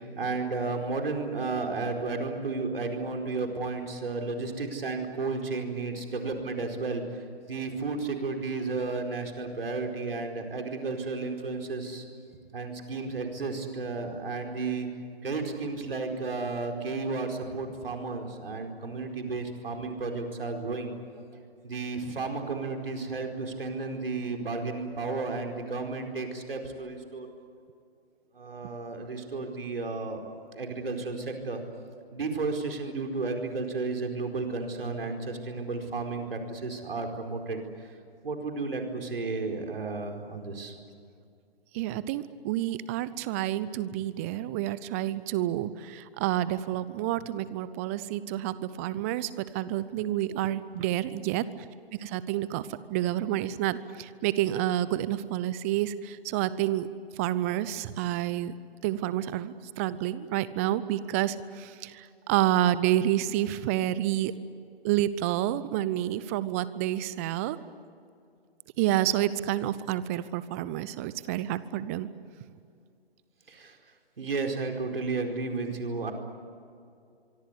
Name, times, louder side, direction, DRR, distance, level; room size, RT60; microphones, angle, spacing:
voice 1, 0.0-12.0 12.5-14.9 15.2-21.2 21.6-27.3 28.3-30.2 30.5-31.6 32.1-38.0 38.2-40.8 73.5-73.8 74.2-76.1, right 3 dB, 65° right, 4 dB, 4.8 m, -33 dB
voice 2, 41.7-51.4 52.0-56.9 57.2-58.5 58.8-64.3 64.8-67.6 68.8-72.1, right 13 dB, 15° right, 16 dB, 0.6 m, -29 dB
25.0 x 24.5 x 8.4 m, 2.3 s
figure-of-eight pair, 130°, 31 cm